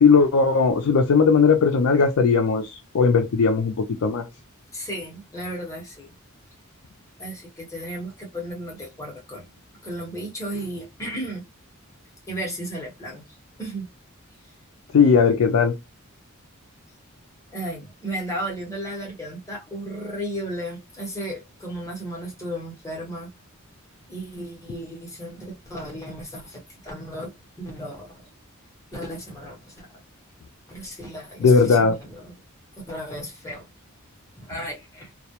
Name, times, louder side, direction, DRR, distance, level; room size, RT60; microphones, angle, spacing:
voice 1, 0.0-4.3 14.9-15.7 31.4-32.0, left 5 dB, 70° left, 0.4 m, -18 dB
voice 2, 4.7-6.1 7.2-9.5 9.8-11.4 12.3-13.2 13.6-13.9 17.5-23.3 24.1-28.2 28.9-29.9 30.7-32.3 32.8-33.6 34.4-35.1, right 1 dB, 15° left, 0.9 m, -34 dB
2.2 x 2.1 x 2.8 m
head